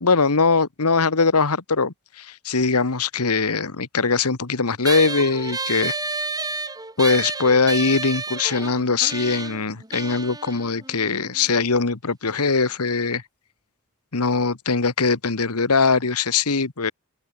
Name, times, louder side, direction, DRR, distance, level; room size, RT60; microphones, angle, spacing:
voice 1, 0.0-5.9 7.0-13.2 14.1-16.9, left 4 dB, 90° left, 1.4 m, -21 dB
sound 1, 4.8-11.6, right 3 dB, 15° right, 4.0 m, -31 dB
head